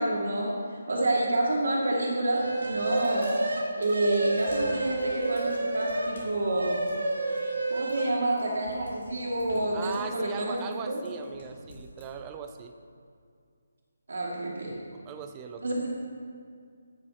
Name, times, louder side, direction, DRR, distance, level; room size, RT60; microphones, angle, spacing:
voice 1, 0.0-3.3 3.8-6.8 7.7-11.0 14.1-14.7 15.6-15.9, right 1 dB, 65° right, -4 dB, 2.2 m, -28 dB
sound 1, 2.3-12.1, left 1 dB, 50° left, 3.1 m, -50 dB
sound 2, 2.3-6.2 6.5-8.1, right 2 dB, 85° right, 2.6 m, -30 dB
voice 2, 9.7-12.7 15.1-15.9, right 7 dB, 15° right, 6 dB, 0.4 m, -39 dB
9.5 x 7.5 x 5.9 m, 2.2 s
hypercardioid pair, 175°, 0 cm